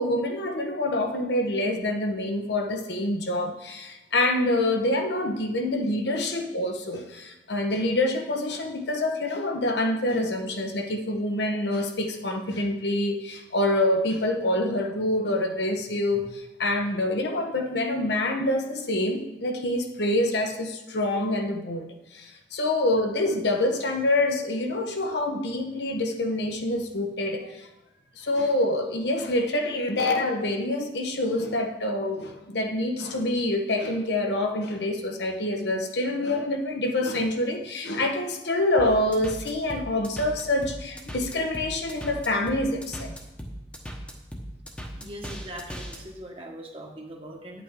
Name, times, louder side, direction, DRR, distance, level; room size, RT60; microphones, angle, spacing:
voice 1, 0.0-21.9 22.1-27.7 28.2-43.2, left 1 dB, 70° left, 4 dB, 1.0 m, -26 dB
sound 1, 38.8-46.0, equal, 5° left, 1.0 m, -38 dB
voice 2, 44.9-47.6, equal, 30° right, 1 dB, 1.3 m, -41 dB
9.7 x 8.3 x 3.7 m, 0.98 s
head